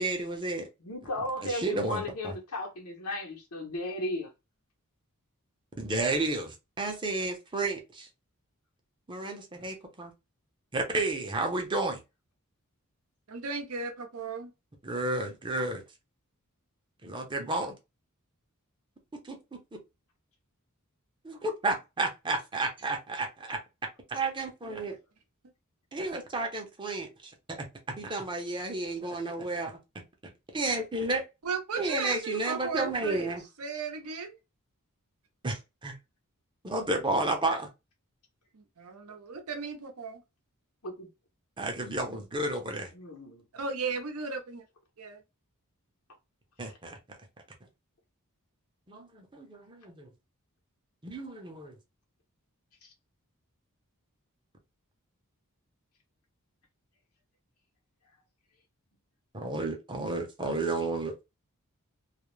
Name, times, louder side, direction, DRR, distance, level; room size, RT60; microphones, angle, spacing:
voice 1, 0.0-0.7 1.4-2.3 5.8-7.8 9.1-10.1 10.7-12.0 14.8-15.8 17.0-17.7 19.2-19.8 21.2-23.6 24.1-25.0 25.9-27.3 28.0-29.8 30.5-31.2 31.8-33.4 35.4-35.9 36.6-37.7 41.6-42.9 46.6-47.0 48.9-50.1 51.0-51.8 59.3-61.2, right 2 dB, 20° right, 0.6 m, -32 dB
voice 2, 0.8-4.3 40.8-41.1 42.9-43.5 46.6-46.8 52.8-52.9, left 1 dB, 80° left, 0.9 m, -36 dB
voice 3, 13.3-14.5 31.4-33.3 33.6-34.4 38.5-40.2 43.5-44.6 45.0-45.2, right 4 dB, 75° right, 0.7 m, -36 dB
2.4 x 2.0 x 3.1 m
head